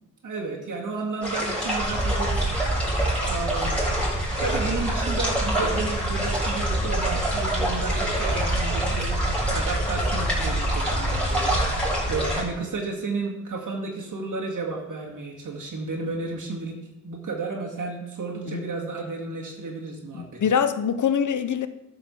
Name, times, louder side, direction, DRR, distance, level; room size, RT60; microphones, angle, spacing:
voice 1, 0.2-2.6 3.3-3.8 4.4-9.1 9.5-16.8 17.0-20.4, right 3 dB, 90° right, 2.1 m, -32 dB
sound 1, 1.2-12.4, equal, 5° left, 3.8 m, -28 dB
sound 2, 1.8-12.3, right 1 dB, 30° right, 2.5 m, -28 dB
voice 2, 20.1-21.7, left 7 dB, 75° left, 0.7 m, -24 dB
12.5 x 5.0 x 7.0 m
wide cardioid pair, 110°, 30 cm